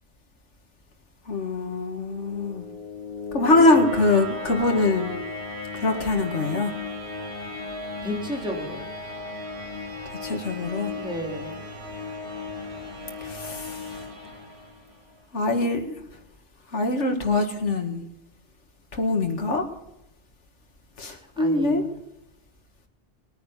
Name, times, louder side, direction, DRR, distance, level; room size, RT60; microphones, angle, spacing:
voice 1, 1.3-2.7 3.3-5.1 5.7-6.7 10.2-10.9 13.2-13.8 15.3-16.0 16.7-18.0 18.9-19.7 21.0-21.8, left 2 dB, 85° left, 3 dB, 2.2 m, -23 dB
sound 1, 2.1-15.1, left 3 dB, 65° right, 3.9 m, -35 dB
voice 2, 8.0-8.9 10.9-11.6 21.1-21.9, equal, 5° right, 0 dB, 3.5 m, -33 dB
20.5 x 9.7 x 7.2 m, 0.84 s
omnidirectional pair, 1.2 m